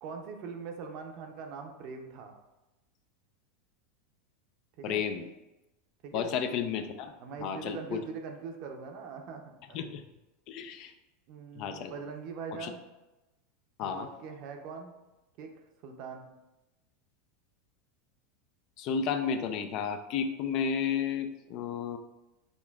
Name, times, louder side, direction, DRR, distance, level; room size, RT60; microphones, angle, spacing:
voice 1, 0.0-2.4 4.8-5.0 6.0-6.3 7.2-9.9 11.3-12.8 13.8-14.9 15.4-15.5 15.8-16.3, right 5 dB, 55° right, 3 dB, 0.6 m, -42 dB
voice 2, 4.8-5.3 6.1-7.1 7.4-8.0 9.7-10.0 10.5-10.9 11.6-11.9 12.6-12.7 13.8-14.1 18.8-22.0, left 7 dB, 50° left, 8 dB, 0.3 m, -32 dB
5.2 x 2.5 x 2.3 m, 1.0 s
hypercardioid pair, 95°, 0 cm